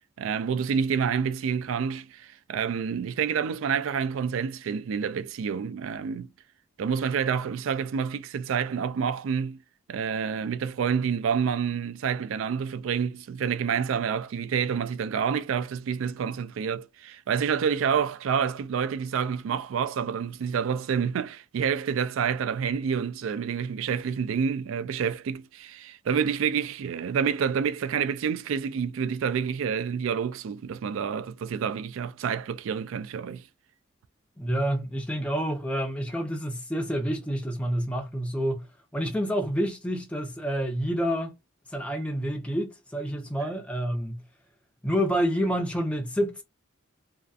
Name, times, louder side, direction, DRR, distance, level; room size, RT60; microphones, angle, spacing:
voice 1, 0.2-6.3 6.8-9.6 9.9-33.4, right 7 dB, 80° right, 0.3 m, -28 dB
voice 2, 34.4-38.7 38.9-41.3 41.7-44.2 44.8-46.4, equal, 5° left, 0.4 m, -28 dB
2.6 x 2.4 x 2.3 m
head